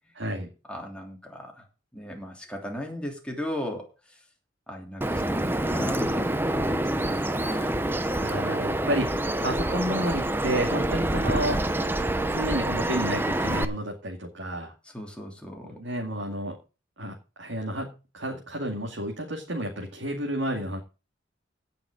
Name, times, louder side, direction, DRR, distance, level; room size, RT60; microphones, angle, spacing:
voice 1, 0.2-0.5 8.2-9.1 9.4-11.6 12.3-14.7 15.6-16.5 17.0-17.9 18.1-20.8, right 1 dB, 65° right, -1 dB, 2.4 m, -31 dB
voice 2, 0.7-1.6 1.9-3.9 4.7-7.8 14.8-15.8, left 1 dB, 5° left, 0 dB, 3.1 m, -37 dB
Bird vocalization bird call bird song, 5.0-13.6, right 1 dB, 10° right, 0.7 m, -27 dB
17.0 x 6.0 x 5.1 m, 0.32 s
head